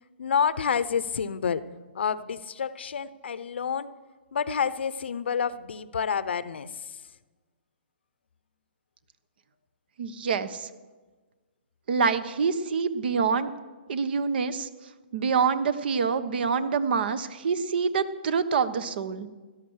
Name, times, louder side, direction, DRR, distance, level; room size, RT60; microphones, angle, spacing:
voice 1, 0.2-1.7 1.9-3.9 4.3-7.0, left 7 dB, 75° left, 16 dB, 0.8 m, -28 dB
voice 2, 10.0-10.7 11.9-13.5 13.9-14.7 15.1-19.3, right 5 dB, 60° right, 14 dB, 1.2 m, -26 dB
17.0 x 12.5 x 6.4 m, 1.3 s
hypercardioid pair, 135°, 6 cm